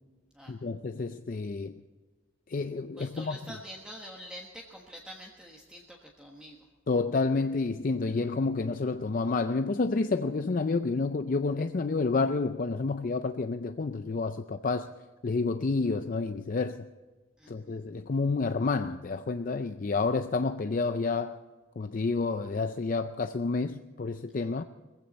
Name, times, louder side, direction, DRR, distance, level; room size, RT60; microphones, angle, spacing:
voice 1, 0.5-1.8 2.5-3.4 6.9-14.9 15.2-16.8 17.5-21.4 21.8-24.6, left 3 dB, 40° left, 0.4 m, -29 dB
voice 2, 3.0-6.6 17.4-17.8, equal, 5° right, 1.3 m, -46 dB
20.5 x 15.5 x 4.2 m
head